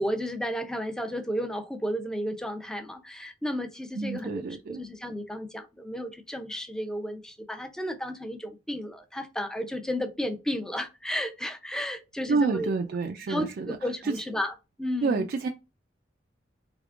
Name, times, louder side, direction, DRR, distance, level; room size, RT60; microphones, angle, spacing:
voice 1, 0.0-4.4 4.7-12.7 13.3-14.5 14.8-15.3, equal, 5° left, 0.5 m, -33 dB
voice 2, 3.9-4.8 12.3-13.8 14.0-14.2 15.0-15.5, right 4 dB, 55° right, 0.3 m, -28 dB
3.5 x 3.4 x 2.4 m
head